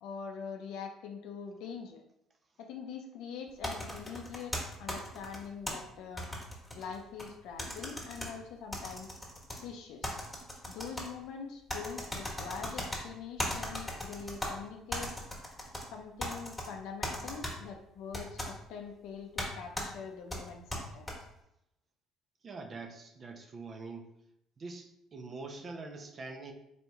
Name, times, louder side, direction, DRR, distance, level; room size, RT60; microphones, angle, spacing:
voice 1, 0.0-2.0 2.6-6.3 6.7-9.1 9.6-10.2 10.7-15.1 15.9-21.1, left 6 dB, 75° left, 3 dB, 0.5 m, -44 dB
sound 1, 3.6-5.7 6.2-7.3 7.6-8.3 8.7-9.6 10.0-11.1 11.7-13.0 13.4-14.5 14.9-15.8 16.2-16.7 17.0-17.5 18.1-18.5 19.4-19.5 19.8-19.9 20.3-21.1, left 1 dB, 10° left, 1.4 m, -37 dB
voice 2, 22.4-24.1 24.6-26.5, right 3 dB, 40° right, 3 dB, 0.7 m, -44 dB
4.2 x 3.0 x 3.4 m, 0.80 s
supercardioid pair, 80°, 0 cm